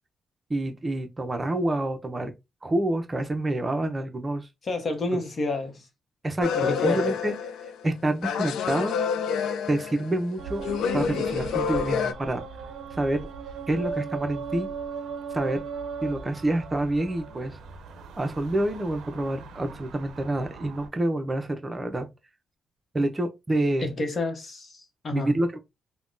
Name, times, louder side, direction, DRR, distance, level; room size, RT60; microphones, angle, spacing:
voice 1, 0.5-2.3 2.6-4.5 6.2-7.3 7.8-9.0 9.7-10.7 10.9-12.4 12.9-13.2 13.7-14.7 15.3-15.6 16.0-17.6 18.2-22.1 22.9-23.9 25.1-25.6, right 1 dB, 25° right, 0.6 m, -27 dB
voice 2, 4.6-5.9 6.5-7.0 23.8-25.3, left 2 dB, 40° left, 0.9 m, -29 dB
sound 1, 6.4-7.9 8.2-10.3 10.6-12.1, left 6 dB, 90° left, 0.3 m, -28 dB
sound 2, 10.4-20.9, right 5 dB, 80° right, 0.5 m, -38 dB
3.4 x 2.2 x 2.5 m
cardioid pair, 100°, 0 cm